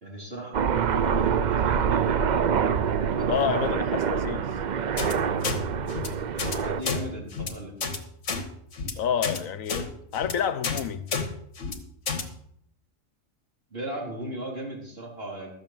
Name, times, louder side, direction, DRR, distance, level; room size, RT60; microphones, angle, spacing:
voice 1, 0.0-3.8 6.0-6.2 6.5-7.7 13.7-15.5, right 1 dB, 45° right, 3.5 m, -37 dB
Aircraft, 0.5-6.8, right 7 dB, 65° right, 0.4 m, -25 dB
voice 2, 3.3-4.5 9.0-11.1, left 8 dB, 80° left, 1.2 m, -29 dB
sound 1, 5.0-5.1 5.4-5.6 5.9-6.1 6.4-6.6 6.8-7.0 7.3-7.5 7.8-8.0 8.2-8.4 8.7-8.9 9.2-9.4 9.7-9.8 10.1-10.3 10.6-10.8 11.1-11.2 11.6-11.7 12.1-12.2, left 5 dB, 65° left, 1.6 m, -29 dB
13.0 x 6.5 x 7.3 m
omnidirectional pair, 1.4 m